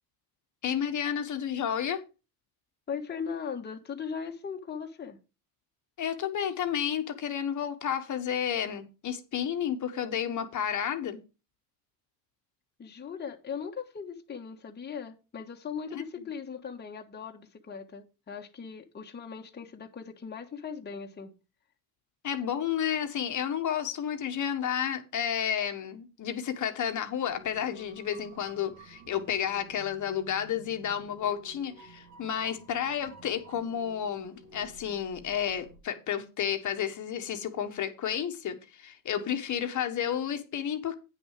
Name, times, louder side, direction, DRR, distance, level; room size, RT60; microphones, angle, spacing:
voice 1, 0.6-2.0 6.0-11.2 15.9-16.0 22.2-40.9, left 9 dB, 40° left, 1.4 m, -31 dB
voice 2, 2.9-5.2 12.8-21.3, left 6 dB, 20° left, 1.4 m, -39 dB
sound 1, 27.2-35.8, right 4 dB, 70° right, 2.5 m, -53 dB
9.3 x 6.3 x 4.9 m
supercardioid pair, 90°, 45 cm